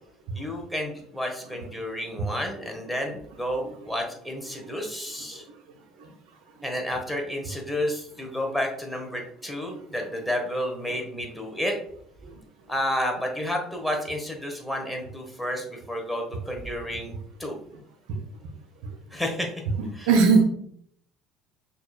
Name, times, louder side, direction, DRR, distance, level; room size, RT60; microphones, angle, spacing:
voice 1, 0.3-5.4 6.6-11.7 12.7-17.1 17.4-17.5 19.1-19.5 19.9-20.2, equal, 5° left, 1 dB, 1.2 m, -31 dB
voice 2, 19.8-20.4, right 5 dB, 70° right, 3 dB, 0.6 m, -22 dB
6.1 x 2.8 x 2.3 m, 0.66 s
hypercardioid pair, 65°, 0 cm